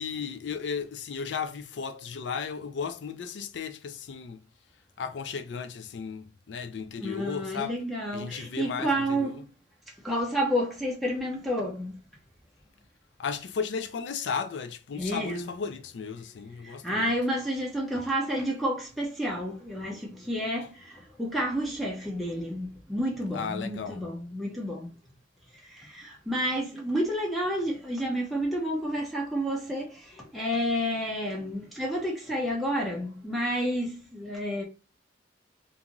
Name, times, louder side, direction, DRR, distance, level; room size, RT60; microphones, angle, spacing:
voice 1, 0.0-4.4 5.0-7.8 8.1-9.4 13.2-17.1 23.3-24.0, left 6 dB, 70° left, 0.4 m, -35 dB
voice 2, 7.0-9.4 10.0-12.0 14.9-15.5 16.6-24.9 25.7-34.6, equal, ahead, 0.5 m, -30 dB
2.5 x 2.4 x 2.9 m
head